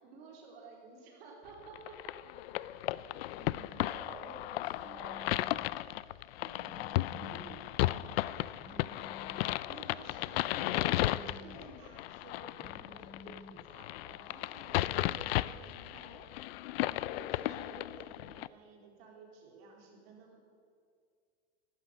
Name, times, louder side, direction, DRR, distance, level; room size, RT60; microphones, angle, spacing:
voice 1, 0.0-2.1 6.4-9.1 9.7-16.3 16.8-20.4, right 3 dB, 65° right, 0 dB, 4.0 m, -53 dB
sound 1, 1.7-18.5, left 16 dB, 65° left, 0.5 m, -35 dB
voice 2, 3.4-5.4 7.0-7.3, right 2 dB, 85° right, -3 dB, 3.4 m, -51 dB
Telephone, 4.9-5.6 6.6-7.6 8.6-9.6 10.6-11.6 12.6-13.6, left 3 dB, ahead, 1.1 m, -53 dB
12.0 x 12.0 x 8.7 m, 2.3 s
supercardioid pair, 125°, 32 cm